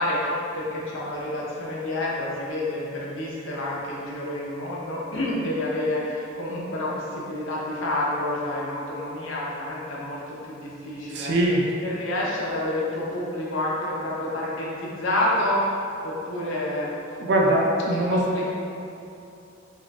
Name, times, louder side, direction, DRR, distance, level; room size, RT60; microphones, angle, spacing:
voice 1, 0.0-11.3 11.8-16.9 18.1-18.5, left 1 dB, 85° left, -5 dB, 0.8 m, -28 dB
voice 2, 11.1-11.7 17.2-18.2, right 1 dB, 60° right, -1 dB, 0.4 m, -22 dB
5.5 x 2.4 x 2.4 m, 2.7 s
head